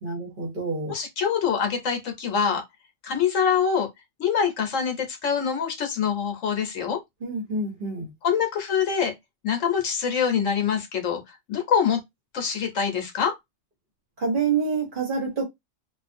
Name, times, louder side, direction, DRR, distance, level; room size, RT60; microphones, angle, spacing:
voice 1, 0.0-0.9 7.2-8.1 14.2-15.4, right 4 dB, 45° right, 1.0 m, -27 dB
voice 2, 0.9-2.6 3.0-3.9 4.2-7.0 8.2-9.1 9.4-11.2 11.5-12.0 12.3-13.3, left 7 dB, 70° left, 1.1 m, -24 dB
2.5 x 2.3 x 2.5 m
omnidirectional pair, 1.4 m